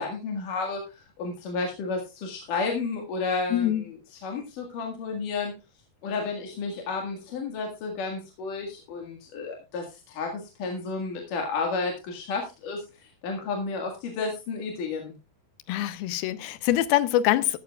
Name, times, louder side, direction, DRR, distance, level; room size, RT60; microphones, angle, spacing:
voice 1, 0.0-5.5 6.0-15.2, left 4 dB, 65° left, 3.2 m, -32 dB
voice 2, 3.5-3.8 15.7-17.6, left 13 dB, 85° left, 2.6 m, -24 dB
14.0 x 13.0 x 2.3 m
omnidirectional pair, 4.3 m